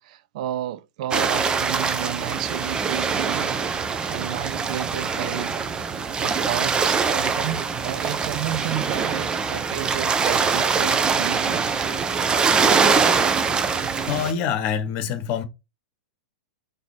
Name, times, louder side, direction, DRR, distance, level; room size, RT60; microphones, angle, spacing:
voice 1, 0.0-3.6 4.1-5.5 6.2-11.7, right 12 dB, 50° right, 0.4 m, -32 dB
sound 1, 1.1-14.3, right 5 dB, 20° right, 0.7 m, -23 dB
voice 2, 14.1-15.4, left 8 dB, 45° left, 1.1 m, -25 dB
4.0 x 3.6 x 3.5 m
figure-of-eight pair, 100°, 5 cm